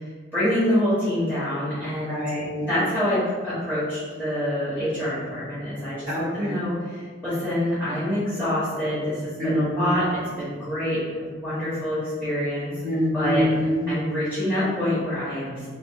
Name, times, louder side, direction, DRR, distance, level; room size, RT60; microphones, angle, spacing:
voice 1, 0.3-2.2 2.6-11.0 11.3-12.7 13.1-13.5 13.9-15.6, left 1 dB, 10° right, -14 dB, 1.1 m, -26 dB
voice 2, 2.0-2.7 6.1-6.6 9.4-9.9 12.8-13.9, equal, 45° right, -10 dB, 1.2 m, -25 dB
3.4 x 2.4 x 2.5 m, 1.5 s
head